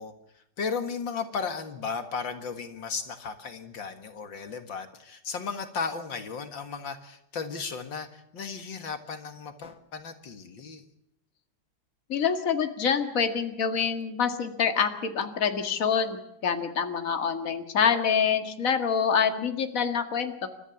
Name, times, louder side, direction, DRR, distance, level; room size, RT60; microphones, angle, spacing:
voice 1, 0.0-10.9, left 5 dB, 70° left, 8 dB, 2.4 m, -35 dB
voice 2, 12.1-20.5, left 6 dB, 45° left, 7 dB, 2.3 m, -26 dB
30.0 x 14.0 x 7.1 m, 0.84 s
omnidirectional pair, 2.1 m